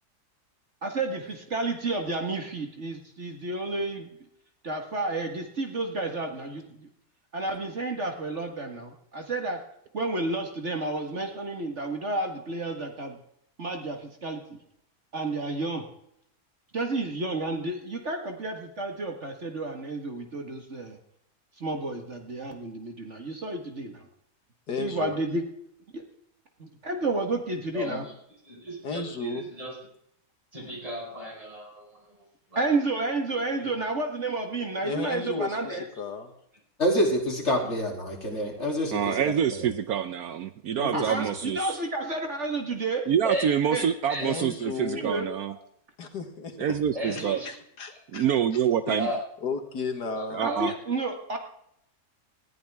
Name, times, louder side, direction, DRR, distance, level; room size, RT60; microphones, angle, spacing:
voice 1, 0.8-4.1 4.6-6.9 7.3-9.6 9.9-13.2 13.6-14.6 15.1-15.8 16.7-21.0 21.6-24.1 24.8-25.4 25.9-26.0 26.6-28.1 32.6-35.8 40.9-43.1 43.7-43.9 44.9-45.3 50.4-51.4, right 2 dB, 45° right, 4 dB, 1.9 m, -31 dB
voice 2, 24.7-25.2 28.8-29.4 34.8-36.3 44.2-45.1 46.0-46.6 47.2-48.2 48.9-49.0 49.4-50.6, left 4 dB, 75° left, 5 dB, 2.2 m, -34 dB
voice 3, 27.7-28.1 28.4-29.8 30.5-32.2 32.5-32.7 33.3-33.7 35.0-35.4 35.6-35.8 37.6-37.7 43.2-44.5 46.9-47.5 49.0-49.2 50.2-50.6, equal, 20° right, -1 dB, 5.1 m, -36 dB
voice 4, 36.8-39.7 40.8-41.3, equal, 40° left, 1 dB, 3.3 m, -27 dB
voice 5, 38.9-41.8 43.1-45.5 46.6-47.4 48.1-49.1 50.3-50.7, right 8 dB, 70° right, 11 dB, 1.1 m, -26 dB
19.5 x 14.0 x 3.6 m, 0.72 s
omnidirectional pair, 1.8 m